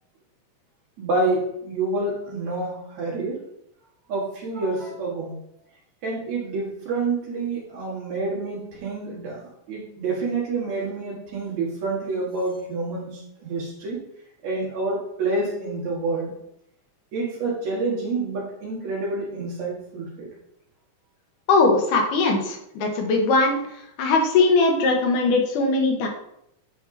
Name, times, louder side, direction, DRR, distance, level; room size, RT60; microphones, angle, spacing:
voice 1, 1.0-3.4 4.1-5.4 6.0-9.4 9.7-14.1 14.4-16.3 17.1-20.3, right 3 dB, 65° right, -3 dB, 2.8 m, -28 dB
voice 2, 21.5-23.6 24.0-26.1, left 3 dB, 80° left, 2 dB, 2.6 m, -20 dB
9.3 x 4.6 x 2.8 m, 0.78 s
omnidirectional pair, 3.7 m